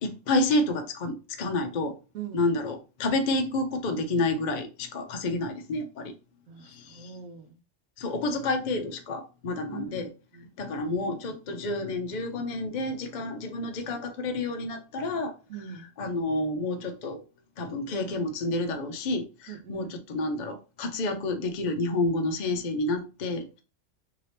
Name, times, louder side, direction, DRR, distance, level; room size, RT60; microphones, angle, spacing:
voice 1, 0.0-1.9 2.3-6.1 6.6-7.1 8.0-10.1 10.6-15.3 16.0-17.2 17.6-23.6, left 2 dB, 55° left, 0.5 m, -29 dB
voice 2, 6.5-7.6 9.7-10.0 10.3-10.5 15.5-15.9 19.5-19.9, right 8 dB, 80° right, 0.9 m, -41 dB
2.8 x 2.7 x 3.2 m
omnidirectional pair, 1.3 m